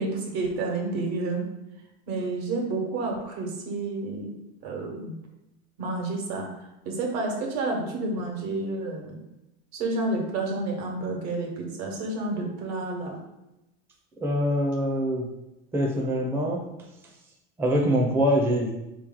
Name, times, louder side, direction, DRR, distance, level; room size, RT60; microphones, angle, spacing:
voice 1, 0.0-1.4 2.1-4.3 4.6-5.1 5.8-6.4 6.8-9.1 9.8-13.2, right 2 dB, 85° right, 0 dB, 1.3 m, -30 dB
voice 2, 14.2-15.3 15.7-16.6 17.6-18.7, equal, 10° right, 0 dB, 0.4 m, -24 dB
4.2 x 3.0 x 3.8 m, 0.94 s
supercardioid pair, 145°, 30 cm